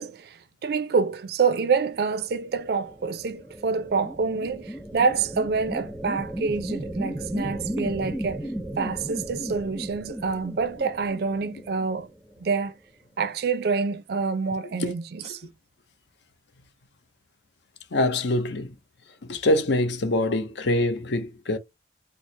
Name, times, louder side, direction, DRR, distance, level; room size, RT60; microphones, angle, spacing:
voice 1, 0.0-8.5 8.8-12.1 12.4-12.7 13.2-15.5, right 5 dB, 60° right, 0.4 m, -27 dB
sound 1, 2.6-12.3, right 1 dB, ahead, 0.5 m, -35 dB
voice 2, 17.9-18.8 19.2-21.6, left 1 dB, 80° left, 0.7 m, -24 dB
4.2 x 2.0 x 3.1 m
head